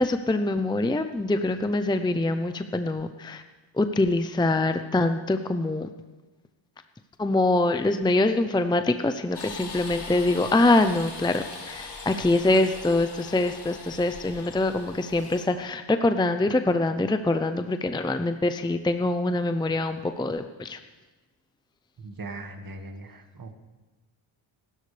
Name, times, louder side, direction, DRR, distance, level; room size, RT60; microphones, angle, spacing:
voice 1, 0.0-3.4 3.8-5.9 7.2-20.8, left 2 dB, 10° left, 8 dB, 0.6 m, -24 dB
sound 1, 9.3-15.5, left 4 dB, 55° left, 3.0 m, -40 dB
voice 2, 22.0-23.5, right 2 dB, 45° right, 5 dB, 1.9 m, -39 dB
26.5 x 12.0 x 3.4 m, 1.2 s
cardioid pair, 85°, 49 cm